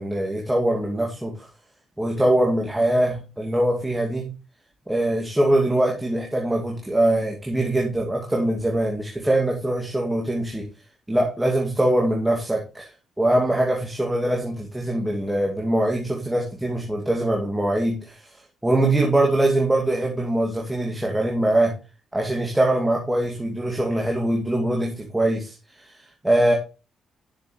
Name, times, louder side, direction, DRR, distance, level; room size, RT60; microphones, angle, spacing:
voice 1, 0.0-1.3 2.0-4.3 4.9-10.7 11.1-12.9 13.2-18.3 18.6-21.7 22.1-26.5, right 1 dB, 10° right, -1 dB, 2.3 m, -22 dB
10.5 x 6.7 x 3.2 m, 0.31 s
supercardioid pair, 65°, 0 cm